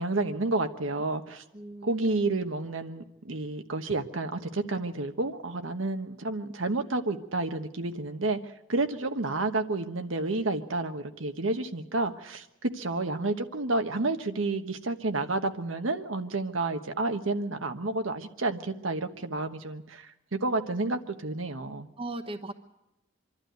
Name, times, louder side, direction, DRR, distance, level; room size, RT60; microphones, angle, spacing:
voice 1, 0.0-1.4 1.8-8.4 8.7-21.9, right 2 dB, 90° right, 7 dB, 1.3 m, -30 dB
voice 2, 1.5-2.1 22.0-22.5, right 2 dB, 30° right, 8 dB, 1.1 m, -38 dB
25.0 x 12.0 x 9.3 m, 0.90 s
head